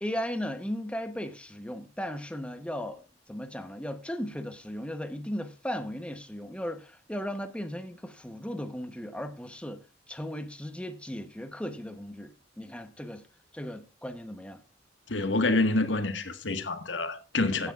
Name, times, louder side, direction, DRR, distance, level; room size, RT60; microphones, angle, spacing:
voice 1, 0.0-3.0 3.3-9.8 10.1-13.2 13.5-14.6 17.6-17.7, equal, 5° left, 0.9 m, -36 dB
voice 2, 15.1-17.7, left 2 dB, 85° left, 1.6 m, -27 dB
15.5 x 9.5 x 2.4 m
head